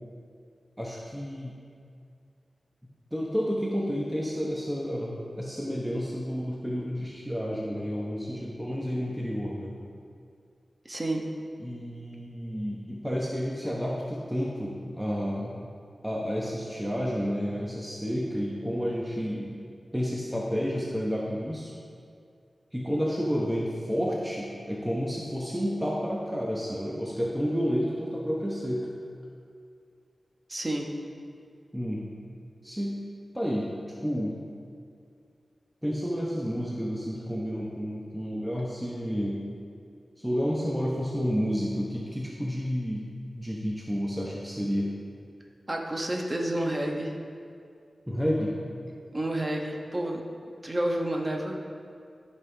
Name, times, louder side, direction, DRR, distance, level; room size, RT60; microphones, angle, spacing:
voice 1, 0.8-1.5 3.1-9.7 11.6-15.7 16.0-19.5 19.9-21.7 22.7-28.9 31.7-32.1 32.6-33.0 33.3-33.7 34.0-34.3 35.8-39.4 40.2-43.1 43.3-44.9 48.1-48.5, equal, 5° right, -4 dB, 0.9 m, -30 dB
voice 2, 10.8-11.2 30.5-30.9 45.7-47.2 49.1-50.2 50.6-51.6, right 1 dB, 25° right, 0 dB, 1.1 m, -30 dB
14.5 x 5.5 x 3.4 m, 2.4 s
wide cardioid pair, 85°, 0 cm